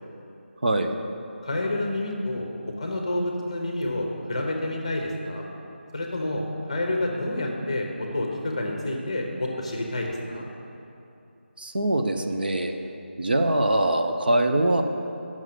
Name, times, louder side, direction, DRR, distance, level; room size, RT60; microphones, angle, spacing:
voice 1, 0.6-1.0 11.6-12.7 13.2-14.8, right 1 dB, 50° right, 5 dB, 0.6 m, -23 dB
voice 2, 1.4-2.5 2.8-5.5 5.9-10.5, left 1 dB, 30° left, 1 dB, 0.9 m, -29 dB
8.0 x 6.0 x 5.8 m, 2.8 s
figure-of-eight pair, 180°, 6 cm